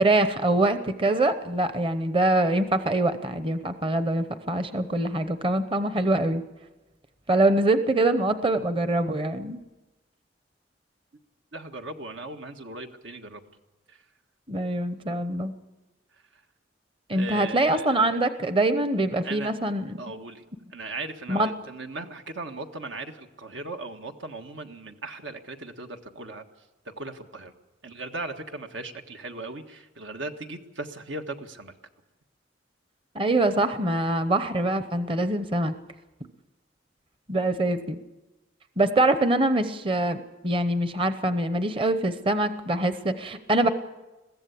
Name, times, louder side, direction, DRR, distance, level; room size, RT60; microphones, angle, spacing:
voice 1, 0.0-6.4 7.3-9.6 14.5-15.5 17.1-19.9 21.3-21.5 33.1-35.7 37.3-38.0 38.8-43.7, right 2 dB, 30° right, 10 dB, 0.8 m, -24 dB
voice 2, 11.5-13.4 13.9-14.0 17.1-18.2 19.2-19.5 20.0-20.4 20.7-26.5 26.8-27.5 27.8-31.7 36.2-36.3, right 2 dB, 85° right, 5 dB, 1.6 m, -38 dB
22.0 x 15.5 x 8.4 m, 1.1 s
head